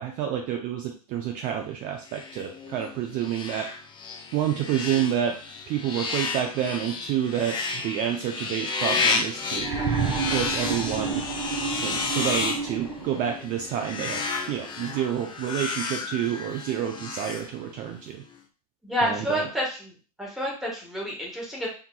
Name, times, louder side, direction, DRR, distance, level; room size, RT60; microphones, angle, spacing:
voice 1, 0.0-3.7 4.3-5.4 5.7-9.8 10.3-11.2 11.8-18.2 19.0-19.5, right 10 dB, 40° right, 3 dB, 0.5 m, -29 dB
sound 1, 2.1-18.0, left 4 dB, 25° left, 0.5 m, -32 dB
sound 2, 9.5-13.3 14.6-14.7, right 5 dB, 25° right, 0.9 m, -30 dB
voice 2, 18.8-19.9 20.2-21.7, equal, ahead, -3 dB, 1.4 m, -29 dB
3.5 x 3.0 x 2.3 m, 0.38 s
hypercardioid pair, 100°, 19 cm